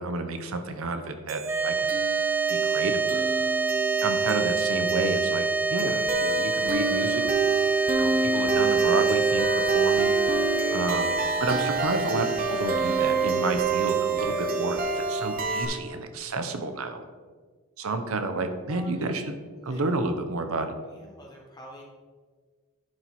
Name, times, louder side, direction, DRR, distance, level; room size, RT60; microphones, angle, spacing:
voice 1, 0.0-1.9 2.5-3.3 4.0-5.4 5.7-7.5 8.0-10.1 10.7-11.1 11.4-17.0 17.8-19.3 19.6-20.7, right 2 dB, 75° right, 7 dB, 0.7 m, -30 dB
sound 1, 1.3-15.7, right 4 dB, 40° right, 0.8 m, -27 dB
sound 2, 1.4-15.8, right 4 dB, 10° right, 0.3 m, -28 dB
voice 2, 18.7-19.2 19.6-19.8 20.8-21.8, left 1 dB, 20° left, -1 dB, 1.4 m, -47 dB
10.5 x 4.6 x 4.3 m, 1.5 s
head